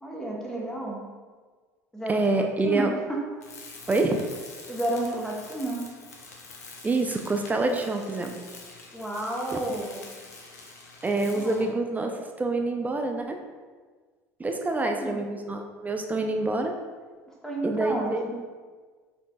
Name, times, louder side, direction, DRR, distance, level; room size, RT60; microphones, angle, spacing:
voice 1, 0.0-1.0 1.9-2.2 2.6-3.2 4.7-5.8 8.9-10.0 11.2-11.8 14.7-15.2 17.4-18.3, right 1 dB, 5° left, -3 dB, 0.9 m, -31 dB
voice 2, 2.1-2.9 3.9-4.2 6.8-8.4 9.5-9.6 11.0-13.4 14.4-16.8 17.6-18.3, right 2 dB, 20° right, 4 dB, 0.4 m, -26 dB
Tools, 3.4-11.8, left 3 dB, 85° left, 0.6 m, -46 dB
7.1 x 2.6 x 2.3 m, 1.5 s
hypercardioid pair, 70°, 8 cm